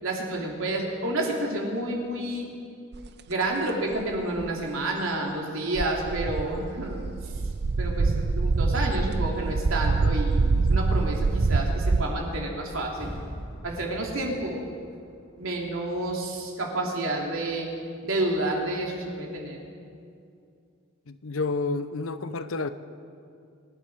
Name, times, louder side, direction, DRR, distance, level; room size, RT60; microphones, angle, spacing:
voice 1, 0.0-2.5 3.3-7.3 7.8-13.1 13.6-14.6 15.4-17.7 18.0-19.7, right 1 dB, 85° right, 3.0 m, -30 dB
sound 1, 2.9-3.1 3.9-4.5 5.8-12.0, right 3 dB, 55° right, 0.5 m, -25 dB
sound 2, 12.9-15.8 16.2-16.3, equal, 5° left, 4.0 m, -42 dB
voice 2, 21.1-22.7, left 3 dB, 85° left, 0.8 m, -30 dB
25.0 x 11.5 x 4.8 m
head